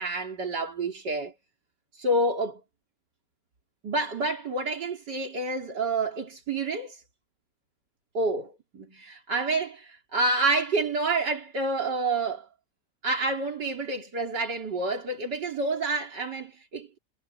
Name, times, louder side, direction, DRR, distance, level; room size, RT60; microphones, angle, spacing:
voice 1, 0.0-1.3 2.0-2.6 3.8-7.0 8.1-12.5 13.0-17.0, right 2 dB, 85° right, 3.8 m, -28 dB
omnidirectional pair, 1.8 m